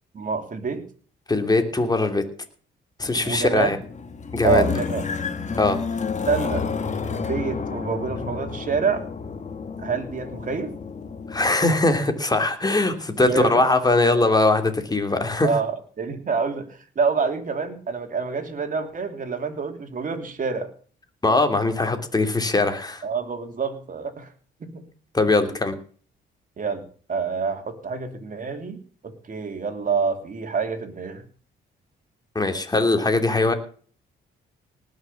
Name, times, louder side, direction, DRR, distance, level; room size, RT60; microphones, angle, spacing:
voice 1, 0.1-0.8 3.2-3.7 4.4-5.0 6.2-6.7 7.2-9.0 9.8-10.7 13.2-13.6 15.4-20.7 23.0-24.3 24.7-24.9 26.6-26.8 27.1-28.8 29.2-31.2, right 5 dB, 45° right, 5 dB, 3.3 m, -27 dB
voice 2, 1.3-2.2 3.0-3.8 4.3-4.7 5.6-5.8 11.3-15.5 21.2-23.0 25.1-25.7 32.3-33.5, left 2 dB, 20° left, 6 dB, 3.0 m, -21 dB
sound 1, 3.0-11.5, left 5 dB, 35° left, 1.6 m, -30 dB
19.0 x 6.6 x 7.1 m, 0.43 s
cardioid pair, 90°, 20 cm